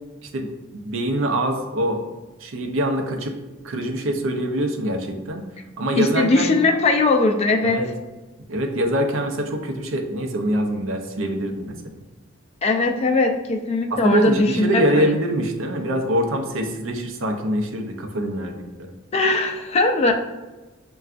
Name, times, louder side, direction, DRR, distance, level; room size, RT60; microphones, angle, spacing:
voice 1, 0.3-2.0 2.4-3.3 3.6-5.5 5.8-6.5 7.6-7.9 8.5-12.0 13.9-18.9, right 1 dB, 75° right, 4 dB, 0.6 m, -24 dB
voice 2, 6.0-7.8 12.6-15.1 19.1-20.1, left 3 dB, 30° left, 4 dB, 0.3 m, -20 dB
6.6 x 2.3 x 2.4 m, 1.2 s
head